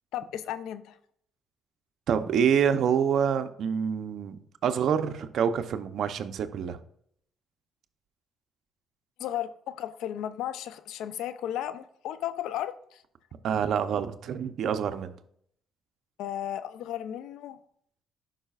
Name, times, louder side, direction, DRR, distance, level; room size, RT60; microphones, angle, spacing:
voice 1, 0.1-1.0 9.2-13.0 16.2-17.6, left 11 dB, 90° left, 13 dB, 0.5 m, -34 dB
voice 2, 2.1-6.8 13.4-15.1, right 7 dB, 70° right, 10 dB, 0.7 m, -27 dB
11.5 x 5.5 x 2.4 m, 0.67 s
cardioid pair, 90°, 0 cm